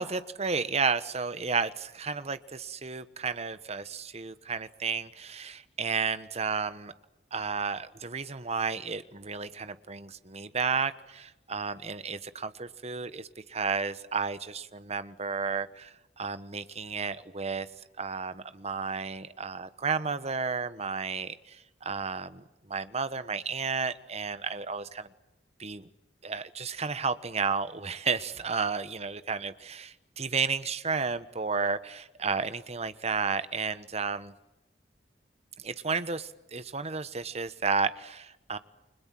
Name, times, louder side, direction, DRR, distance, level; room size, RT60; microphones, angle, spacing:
voice 1, 0.0-6.9 7.3-17.7 18.0-25.1 25.6-25.9 26.2-34.3 35.6-38.6, right 5 dB, 40° right, 13 dB, 1.3 m, -32 dB
30.0 x 25.5 x 7.7 m, 0.97 s
head